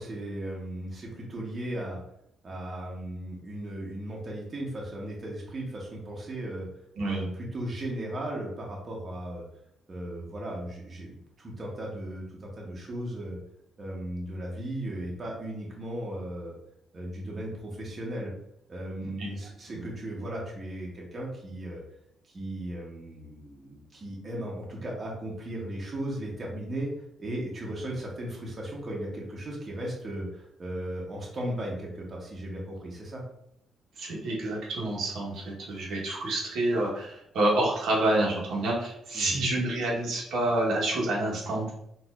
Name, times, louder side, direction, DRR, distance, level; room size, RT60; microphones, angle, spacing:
voice 1, 0.0-2.0 2.4-6.7 7.0-9.4 9.9-13.4 13.8-16.5 16.9-18.3 18.7-21.8 22.2-26.9 27.2-33.2 39.1-39.4, right 1 dB, 35° right, -3 dB, 1.0 m, -36 dB
voice 2, 7.0-7.3 19.0-19.1 34.0-41.7, right 1 dB, 75° right, -4 dB, 1.2 m, -28 dB
4.3 x 2.7 x 2.4 m, 0.74 s
cardioid pair, 90°, 0 cm